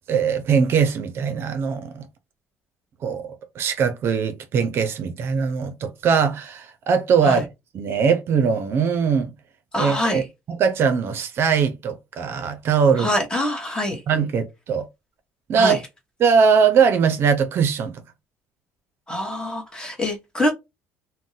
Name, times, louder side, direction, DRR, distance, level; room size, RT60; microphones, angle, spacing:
voice 1, 0.1-2.0 3.0-7.5 7.7-9.3 9.8-10.2 10.5-13.1 14.1-14.9 15.5-15.8 16.2-18.0, right 6 dB, 50° right, 0.5 m, -21 dB
voice 2, 9.7-10.2 13.0-14.0 15.6-15.8 19.1-20.5, left 1 dB, 15° left, 1.0 m, -25 dB
2.5 x 2.1 x 3.9 m
cardioid pair, 125°, 5 cm